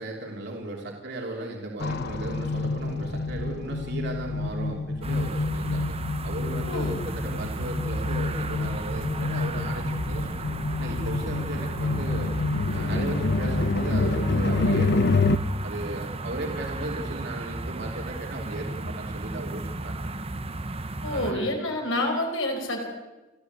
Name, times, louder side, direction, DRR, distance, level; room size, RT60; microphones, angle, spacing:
voice 1, 0.0-5.9 6.2-10.5 10.8-12.3 12.7-15.3 15.6-20.1 21.0-21.5, right 2 dB, 60° right, 0 dB, 3.2 m, -36 dB
sound 1, 1.8-15.4, left 3 dB, 55° left, 0.9 m, -28 dB
sound 2, 5.0-21.3, right 2 dB, 30° right, 1.0 m, -33 dB
voice 2, 6.6-7.0 21.0-22.9, left 1 dB, 80° left, 2 dB, 5.1 m, -28 dB
28.0 x 14.0 x 8.2 m, 1.1 s
head